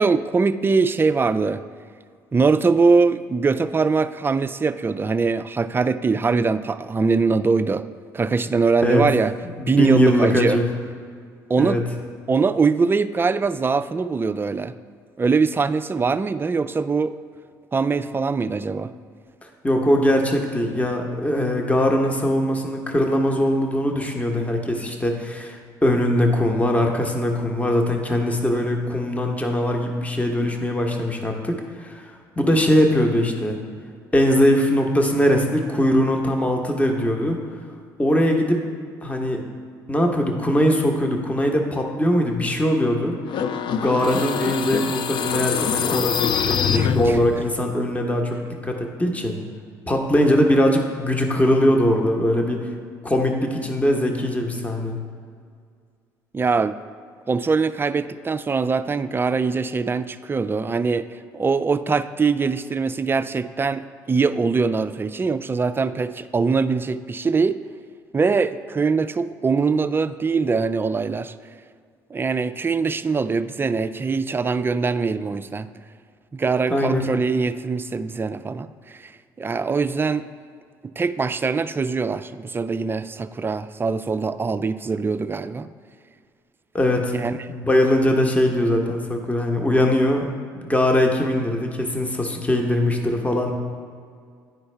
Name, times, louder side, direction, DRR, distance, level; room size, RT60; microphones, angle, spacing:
voice 1, 0.0-1.6 2.3-7.9 8.1-9.3 9.7-10.6 11.5-11.8 12.3-14.7 15.2-17.1 17.7-18.9 46.7-47.2 56.3-56.7 57.3-61.1 61.3-67.6 68.1-71.3 72.1-75.7 76.3-79.1 79.4-80.2 81.0-85.7 87.1-87.3, right 4 dB, 20° right, 12 dB, 0.3 m, -22 dB
voice 2, 9.6-10.6 11.6-11.8 19.6-33.6 34.1-37.4 38.0-38.6 39.0-39.4 39.9-43.2 43.7-49.4 49.9-52.7 53.0-55.0 76.7-77.0 86.7-87.1 87.5-90.3 90.6-93.5, left 1 dB, 15° left, 2 dB, 1.0 m, -21 dB
sound 1, 43.3-47.5, left 8 dB, 55° left, 0.4 m, -24 dB
10.5 x 4.4 x 3.3 m, 2.1 s
hypercardioid pair, 55°, 10 cm